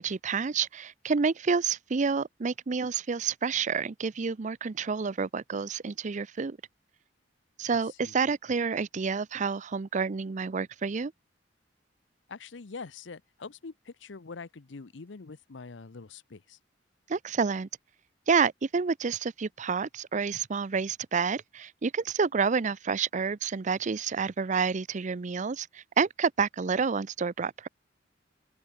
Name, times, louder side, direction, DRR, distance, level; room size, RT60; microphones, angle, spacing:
voice 1, 0.0-6.6 7.6-11.1 17.1-17.7 18.3-27.7, right 5 dB, 40° right, 0.5 m, -29 dB
voice 2, 12.3-16.6, left 4 dB, 80° left, 0.7 m, -44 dB
open air
head